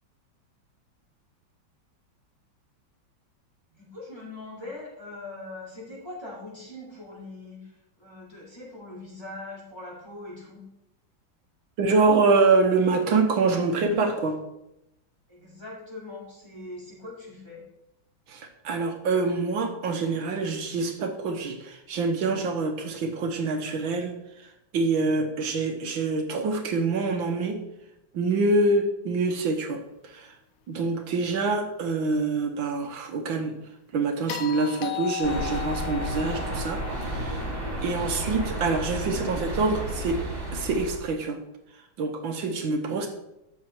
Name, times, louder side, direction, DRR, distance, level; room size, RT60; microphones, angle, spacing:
voice 1, 3.7-10.6 15.3-17.6, left 2 dB, 10° left, -7 dB, 4.3 m, -41 dB
voice 2, 11.8-14.4 18.3-24.2 24.7-27.6 28.1-30.4 30.7-33.6 33.9-36.8 37.1-37.4 37.8-40.2 40.5-41.4 42.0-43.1, right 3 dB, 75° right, 5 dB, 1.8 m, -25 dB
sound 1, 34.3-38.6 40.8-40.9, left 13 dB, 75° left, 1.4 m, -37 dB
sound 2, 35.2-41.0, right 1 dB, 40° right, 3.6 m, -32 dB
12.5 x 8.3 x 4.5 m, 0.87 s
omnidirectional pair, 2.1 m